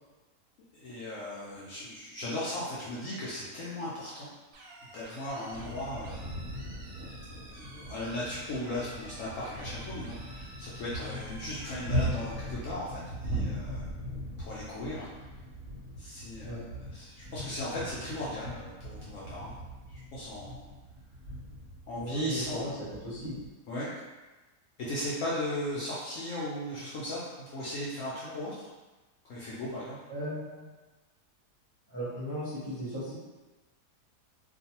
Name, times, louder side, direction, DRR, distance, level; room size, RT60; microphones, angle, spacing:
voice 1, 0.7-4.3 4.9-6.3 7.6-15.3 16.0-19.5 19.9-20.6 21.9-22.6 23.7-23.9 24.8-28.7 29.2-30.0, left 1 dB, 70° left, -7 dB, 0.8 m, -37 dB
sound 1, 4.5-12.5, right 1 dB, 85° right, 0.5 m, -51 dB
sound 2, 5.5-23.5, equal, 55° right, 0.8 m, -39 dB
voice 2, 21.9-22.7 23.0-23.4 30.1-30.6 31.9-33.1, right 1 dB, 30° right, -12 dB, 0.4 m, -35 dB
2.5 x 2.3 x 2.8 m, 1.2 s
omnidirectional pair, 1.7 m